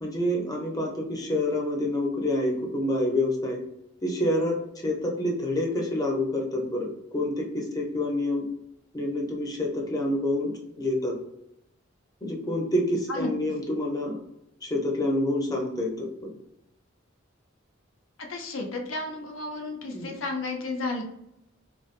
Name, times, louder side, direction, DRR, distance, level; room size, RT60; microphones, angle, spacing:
voice 1, 0.0-3.6 4.0-8.5 8.9-10.5 10.8-11.2 12.2-14.2 14.7-16.1 19.9-20.1, left 1 dB, 20° left, -1 dB, 0.6 m, -27 dB
voice 2, 18.3-21.0, left 2 dB, 85° left, 2 dB, 0.7 m, -32 dB
3.3 x 2.2 x 2.4 m, 0.80 s
head